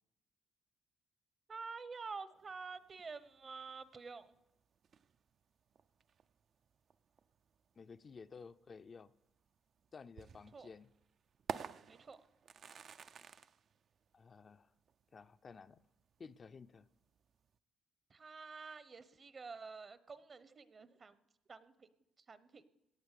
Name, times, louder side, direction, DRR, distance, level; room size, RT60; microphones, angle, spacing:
voice 1, 1.5-4.4 10.5-10.7 11.9-12.2 18.1-21.1 21.5-21.9 22.3-22.6, right 4 dB, 40° right, 15 dB, 0.9 m, -49 dB
sound 1, 2.3-17.6, right 7 dB, 55° right, 0.5 m, -53 dB
voice 2, 7.8-9.1 9.9-10.9 14.1-14.7 15.1-15.8 16.2-16.9, left 5 dB, 40° left, 10 dB, 0.5 m, -54 dB
17.5 x 8.7 x 6.7 m, 0.87 s
cardioid pair, 90°, 0 cm